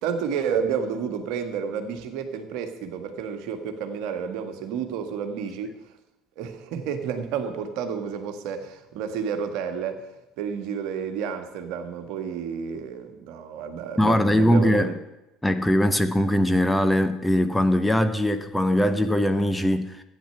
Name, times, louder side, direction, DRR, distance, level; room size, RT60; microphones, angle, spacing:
voice 1, 0.0-5.8 6.4-10.1 10.4-14.9, right 7 dB, 60° right, 1.6 m, -30 dB
voice 2, 14.0-14.9 15.4-20.0, left 1 dB, 10° left, 1.0 m, -21 dB
13.5 x 9.5 x 6.8 m
figure-of-eight pair, 60°, 0 cm